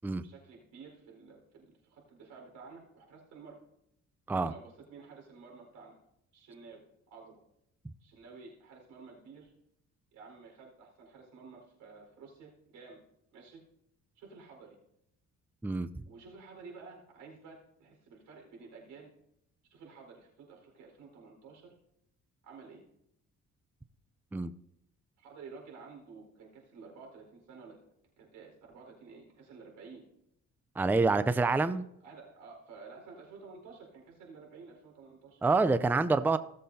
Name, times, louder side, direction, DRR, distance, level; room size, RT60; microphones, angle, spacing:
voice 1, 0.2-3.6 4.3-6.0 6.3-6.8 7.1-7.4 8.0-9.5 10.1-13.0 13.3-13.6 14.1-14.8 16.1-19.1 19.7-21.7 22.4-22.8 25.2-27.8 28.2-30.1 31.1-31.8 32.0-35.4, right 4 dB, 90° right, 0 dB, 4.7 m, -52 dB
voice 2, 30.8-31.8 35.4-36.4, right 3 dB, 5° right, 13 dB, 0.4 m, -27 dB
18.0 x 7.5 x 2.8 m, 0.77 s
cardioid pair, 90°, 30 cm